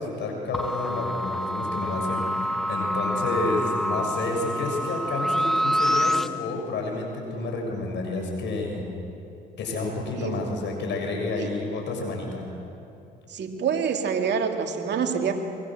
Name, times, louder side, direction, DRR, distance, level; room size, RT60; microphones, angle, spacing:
voice 1, 0.0-8.8 9.6-12.5, left 3 dB, 70° left, 1 dB, 6.8 m, -30 dB
sound 1, 0.5-6.3, equal, ahead, 1.2 m, -27 dB
voice 2, 13.3-15.4, right 6 dB, 60° right, 4 dB, 2.5 m, -27 dB
23.5 x 23.0 x 7.8 m, 2.8 s
supercardioid pair, 60°, 20 cm